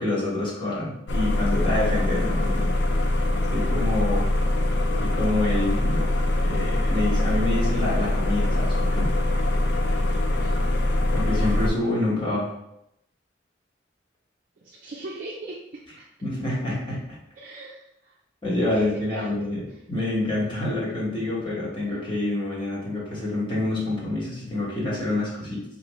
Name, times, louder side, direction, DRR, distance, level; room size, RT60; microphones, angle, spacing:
voice 1, 0.0-2.7 3.5-4.3 5.0-9.1 11.1-12.5 16.2-17.0 18.4-19.6 19.9-25.6, left 2 dB, 25° left, -7 dB, 1.3 m, -27 dB
sound 1, 1.1-11.7, left 1 dB, 65° left, 0.5 m, -23 dB
voice 2, 10.2-10.6 14.6-16.1 17.4-18.2 18.7-19.8 21.9-22.1, right 1 dB, 50° right, -4 dB, 0.4 m, -39 dB
4.6 x 2.5 x 3.0 m, 0.82 s
head